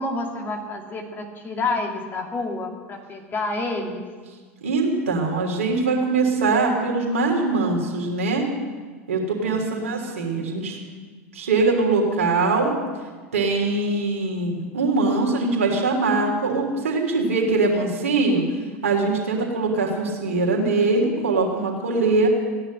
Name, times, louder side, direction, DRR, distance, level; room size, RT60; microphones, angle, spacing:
voice 1, 0.0-4.0 9.4-10.0, left 2 dB, 25° left, 2 dB, 2.6 m, -29 dB
voice 2, 4.6-8.5 9.1-10.8 11.3-12.8 13.3-18.4 18.8-22.3, right 3 dB, 70° right, 0 dB, 3.3 m, -22 dB
16.0 x 10.5 x 7.8 m, 1.5 s
figure-of-eight pair, 80°, 8 cm